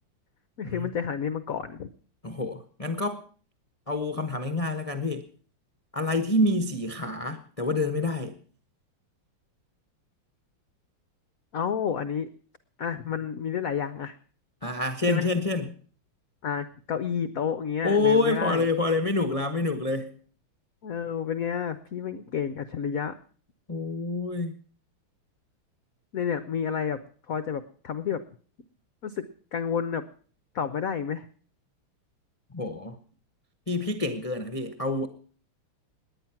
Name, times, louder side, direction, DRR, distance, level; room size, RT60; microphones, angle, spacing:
voice 1, 0.6-1.9 11.5-12.3 12.8-14.1 15.1-15.3 16.4-18.7 20.8-23.1 26.1-27.0 27.3-28.2 29.0-29.3 29.5-30.0 30.5-31.3, left 7 dB, 65° left, 13 dB, 0.8 m, -30 dB
voice 2, 2.2-3.2 3.9-5.3 5.9-8.3 14.6-15.7 17.8-20.1 23.7-24.6 32.5-33.0 33.7-35.1, left 2 dB, 35° left, 9 dB, 0.6 m, -27 dB
18.5 x 10.5 x 5.9 m, 0.43 s
omnidirectional pair, 2.4 m